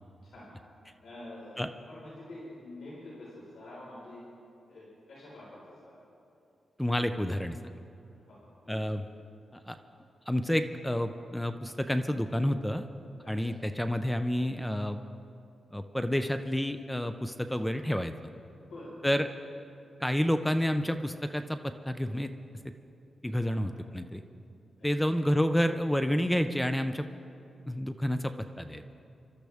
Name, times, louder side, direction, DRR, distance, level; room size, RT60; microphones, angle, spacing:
voice 1, 1.0-1.6 1.9-4.2 4.7-6.0 8.3-8.4 8.6-8.8 13.2-13.6 18.6-19.2 23.4-23.6 24.8-25.1, left 1 dB, 80° left, -7 dB, 4.6 m, -47 dB
voice 2, 6.8-7.6 8.7-9.0 9.7-9.8 10.3-12.9 13.3-15.0 15.7-18.1 19.0-19.3 20.0-22.3 23.2-24.2 24.8-27.1 27.7-28.8, equal, 5° left, 8 dB, 0.5 m, -29 dB
26.5 x 13.0 x 3.5 m, 2.6 s
wide cardioid pair, 110°, 0 cm